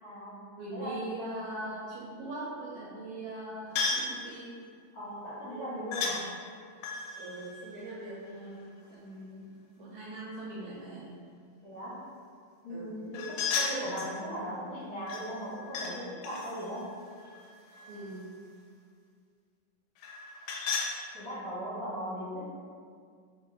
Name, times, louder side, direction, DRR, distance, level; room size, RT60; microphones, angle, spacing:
voice 1, 0.0-0.4 0.7-1.1 4.9-6.3 11.6-12.0 12.6-16.9 21.1-22.4, equal, 55° left, -12 dB, 1.8 m, -38 dB
voice 2, 0.6-4.6 7.2-11.1 12.7-13.0 17.9-18.3, right 1 dB, 75° right, -7 dB, 1.9 m, -41 dB
sound 1, 3.8-4.1 5.9-6.2 6.8-8.6 13.1-14.2 15.1-15.9 16.2-18.1 20.0-20.9, left 4 dB, 80° left, 2.0 m, -35 dB
4.4 x 3.9 x 2.4 m, 2.1 s
omnidirectional pair, 3.8 m